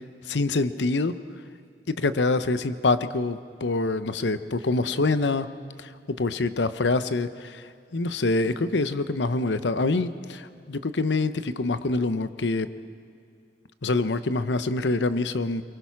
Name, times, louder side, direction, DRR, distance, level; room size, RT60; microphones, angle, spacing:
voice 1, 0.3-1.1 1.9-5.5 5.8-7.6 7.9-12.7 13.8-15.6, left 3 dB, 90° left, 13 dB, 0.8 m, -25 dB
23.5 x 23.0 x 5.9 m, 2.4 s
head